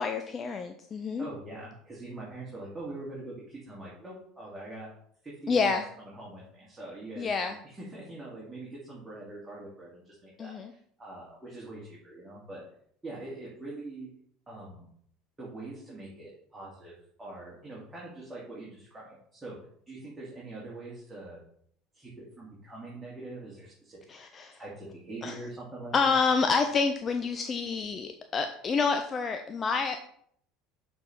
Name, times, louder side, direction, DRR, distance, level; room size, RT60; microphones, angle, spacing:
voice 1, 0.0-1.3 5.5-5.8 7.2-7.6 10.4-10.7 24.1-24.6 25.2-25.3 25.9-30.1, left 5 dB, 30° left, 6 dB, 0.5 m, -28 dB
voice 2, 1.2-4.9 5.2-12.6 13.0-14.1 14.5-14.9 15.4-19.6 19.9-21.4 21.9-24.0 24.6-26.2, right 2 dB, 15° right, -6 dB, 2.4 m, -43 dB
6.6 x 4.2 x 4.6 m, 0.65 s
figure-of-eight pair, 65°, 0 cm